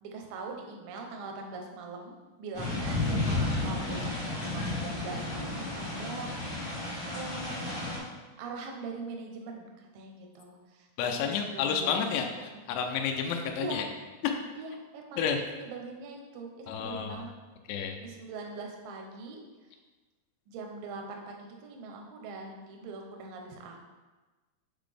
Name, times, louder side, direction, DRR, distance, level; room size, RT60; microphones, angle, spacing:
voice 1, 0.0-2.1 2.4-12.0 12.4-12.5 13.5-13.8 14.5-15.3 15.5-17.3 18.0-19.4 20.5-23.8, right 3 dB, 80° right, 1 dB, 2.1 m, -42 dB
sound 1, 2.5-8.0, left 2 dB, 65° left, 0.9 m, -32 dB
voice 2, 11.0-13.9 14.2-14.4 15.2-15.4 16.7-17.3 17.7-18.0, left 7 dB, 85° left, 4 dB, 2.7 m, -30 dB
7.3 x 4.0 x 3.3 m, 1.2 s
omnidirectional pair, 4.9 m